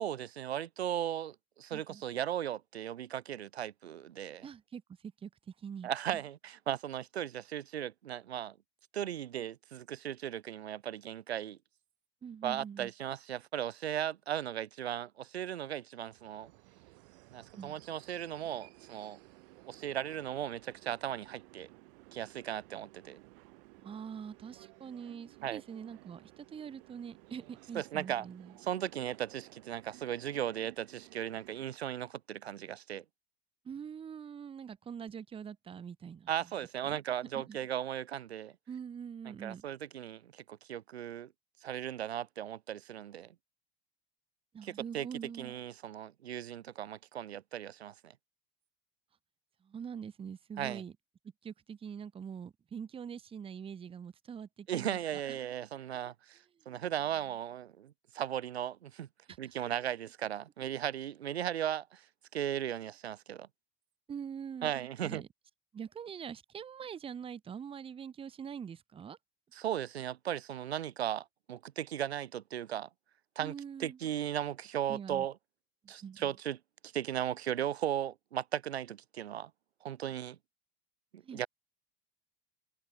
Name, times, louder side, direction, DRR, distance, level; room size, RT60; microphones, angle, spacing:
voice 1, 0.0-4.5 5.8-8.5 8.9-11.6 12.4-16.5 17.3-19.2 19.7-21.7 22.1-23.2 25.4-25.6 27.7-28.3 28.6-33.0 36.3-38.5 39.4-41.3 41.6-43.3 44.6-45.1 45.4-48.1 50.6-50.8 54.7-56.4 56.7-59.1 59.4-62.1 62.3-63.5 64.6-65.2 69.5-72.9 73.4-73.5 73.8-75.3 75.9-76.6 76.9-79.5 79.8-80.4 81.1-81.5, right 10 dB, 85° right, 0.6 m, -37 dB
voice 2, 1.7-2.0 4.4-5.9 12.2-12.9 17.4-17.8 23.8-28.6 33.6-36.5 36.8-37.0 37.3-37.6 38.7-39.7 44.5-45.6 49.6-50.9 51.4-55.4 59.3-59.4 64.1-64.7 65.0-65.3 65.7-69.2 73.4-74.0 74.9-75.3 75.8-76.3 81.2-81.4, right 7 dB, 20° right, 0.6 m, -44 dB
sound 1, 16.0-31.7, right 25 dB, 60° right, 0.9 m, -57 dB
open air
hypercardioid pair, 80°, 31 cm